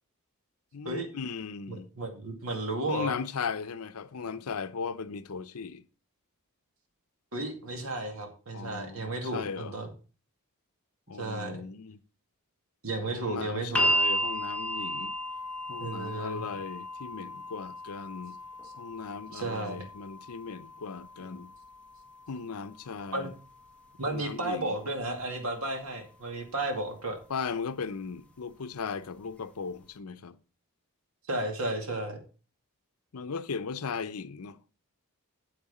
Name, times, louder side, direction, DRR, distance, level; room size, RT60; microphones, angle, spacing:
voice 1, 0.7-1.9 2.9-5.8 8.5-9.7 11.1-12.0 13.1-15.1 15.7-18.4 18.8-21.5 22.3-23.3 24.0-24.8 27.3-30.4 33.1-34.6, left 5 dB, 80° left, 0.6 m, -37 dB
voice 2, 1.7-3.2 7.3-9.9 11.2-11.6 12.8-13.9 15.8-16.5 18.6-18.7 19.3-19.8 23.1-23.3 24.0-27.2 31.3-32.2, right 2 dB, 70° right, 2.3 m, -33 dB
sound 1, 13.7-25.8 26.9-27.0, equal, 5° left, 1.0 m, -35 dB
8.7 x 8.0 x 4.2 m
head